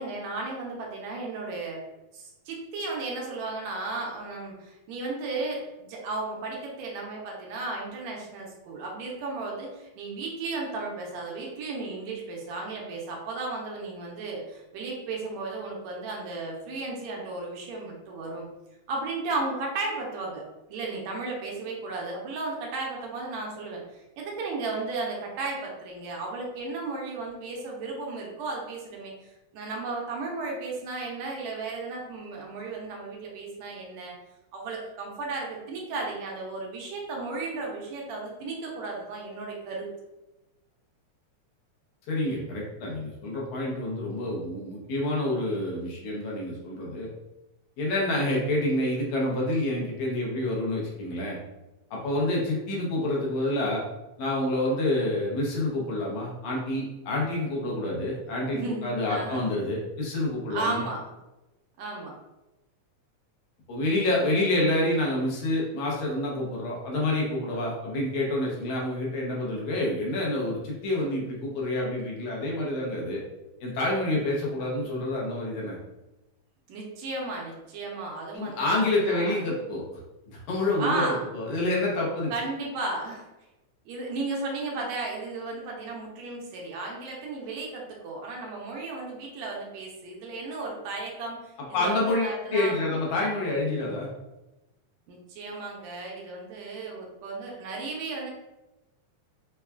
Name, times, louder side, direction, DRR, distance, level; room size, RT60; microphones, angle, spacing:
voice 1, 0.0-1.8 2.1-18.5 18.9-34.1 34.5-39.9 58.5-59.4 60.5-61.0 61.8-62.2 76.7-78.7 78.9-79.4 80.8-81.2 82.3-83.3 83.9-92.7 95.1-98.3, right 3 dB, 80° right, -1 dB, 1.9 m, -34 dB
voice 2, 42.1-47.1 47.8-51.4 51.9-53.8 54.2-60.8 63.7-73.2 73.6-75.8 78.3-79.9 80.3-82.3 91.7-94.1, left 1 dB, 80° left, -3 dB, 2.2 m, -28 dB
5.4 x 2.2 x 2.3 m, 1.0 s
omnidirectional pair, 3.3 m